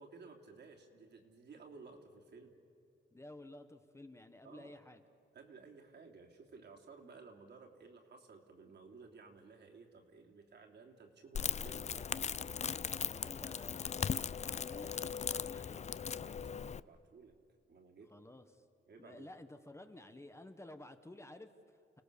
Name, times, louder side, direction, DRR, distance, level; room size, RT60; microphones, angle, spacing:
voice 1, 0.0-2.5 4.4-4.7 5.3-12.1 16.2-17.3 17.7-18.1 18.9-19.3, right 4 dB, 60° right, 1 dB, 3.2 m, -56 dB
voice 2, 3.1-5.0 13.1-15.8 18.1-18.6 19.0-22.0, left 1 dB, 15° left, 8 dB, 1.2 m, -53 dB
Crackle, 11.3-16.8, left 7 dB, 35° left, 0.4 m, -38 dB
30.0 x 18.5 x 6.9 m, 2.6 s
cardioid pair, 105°, 20 cm